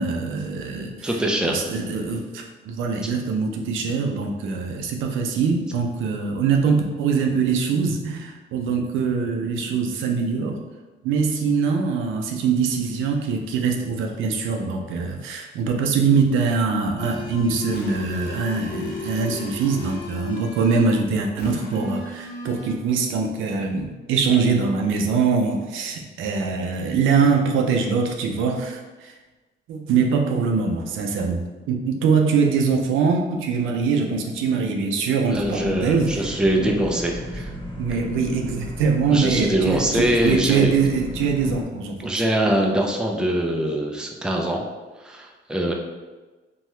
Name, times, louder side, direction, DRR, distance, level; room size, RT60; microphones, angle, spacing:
voice 1, 0.0-10.6 11.0-29.2 29.7-36.7 37.8-42.1, right 5 dB, 80° right, 3 dB, 0.5 m, -23 dB
voice 2, 1.0-1.7 35.3-37.5 39.1-40.7 42.0-44.6 45.0-45.7, right 1 dB, 5° right, 1 dB, 0.4 m, -23 dB
sound 1, 17.0-20.9 21.4-22.7, left 2 dB, 55° left, 0.8 m, -35 dB
sound 2, 35.3-41.6, equal, 25° left, 0.8 m, -34 dB
2.8 x 2.3 x 3.1 m, 1.2 s
cardioid pair, 90°, 20 cm